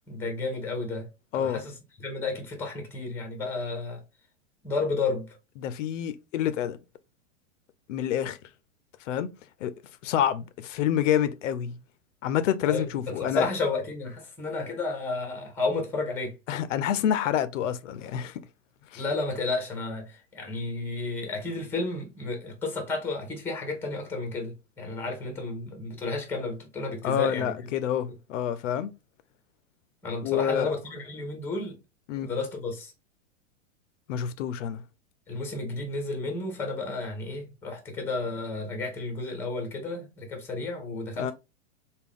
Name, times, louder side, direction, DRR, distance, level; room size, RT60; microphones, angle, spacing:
voice 1, 0.1-1.1 1.3-4.0 4.6-5.4 12.7-16.4 19.0-27.9 30.0-31.8 32.2-32.9 35.3-41.3, left 3 dB, 5° left, 0.7 m, -32 dB
voice 2, 5.6-6.8 7.9-8.4 9.1-9.3 9.6-9.7 10.0-11.8 12.2-13.5 16.5-18.4 18.9-19.0 27.0-28.9 30.2-30.7 32.1-32.3 34.1-34.8 41.2-41.3, left 10 dB, 75° left, 0.5 m, -27 dB
3.5 x 2.2 x 3.6 m
supercardioid pair, 150°, 38 cm